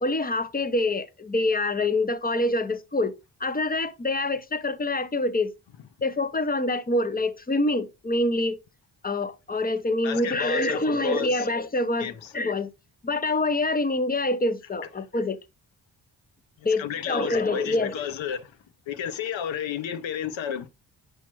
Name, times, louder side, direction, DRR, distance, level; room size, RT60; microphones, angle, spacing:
voice 1, 0.0-5.5 6.0-8.6 9.0-12.7 13.0-15.4 16.6-18.0, left 2 dB, 20° left, 0.7 m, -26 dB
voice 2, 10.0-11.5 12.0-12.3 16.8-18.5 18.9-20.7, left 9 dB, 80° left, 0.7 m, -32 dB
6.0 x 5.6 x 3.0 m
cardioid pair, 55°, 45 cm